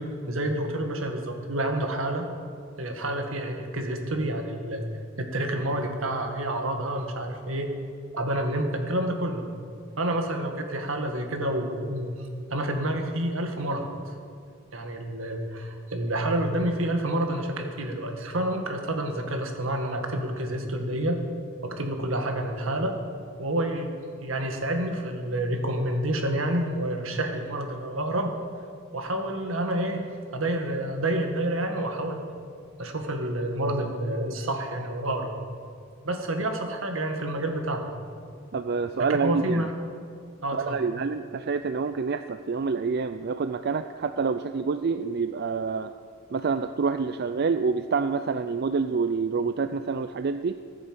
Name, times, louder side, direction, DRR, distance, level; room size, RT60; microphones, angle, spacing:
voice 1, 0.0-2.3 2.8-4.8 5.2-7.7 8.2-9.4 10.0-12.1 12.5-13.8 14.7-21.2 21.6-22.9 23.4-23.9 24.2-28.3 28.9-30.0 30.3-32.2 32.8-35.3 36.0-37.9 39.1-39.7 40.4-40.8, right 1 dB, 80° right, 4 dB, 1.8 m, -28 dB
voice 2, 38.5-39.7 40.5-45.9 46.3-50.6, right 5 dB, 50° right, 10 dB, 0.4 m, -27 dB
14.5 x 9.7 x 7.7 m, 2.3 s
head